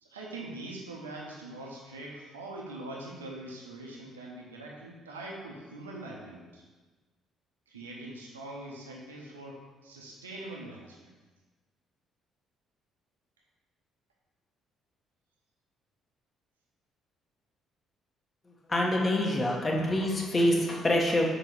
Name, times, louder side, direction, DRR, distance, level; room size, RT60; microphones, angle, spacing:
voice 1, 0.0-6.6 7.7-11.1, right 2 dB, 80° right, -2 dB, 0.7 m, -43 dB
voice 2, 18.7-21.2, left 1 dB, 25° left, -1 dB, 1.2 m, -26 dB
6.0 x 3.0 x 5.3 m, 1.3 s
figure-of-eight pair, 45°, 0 cm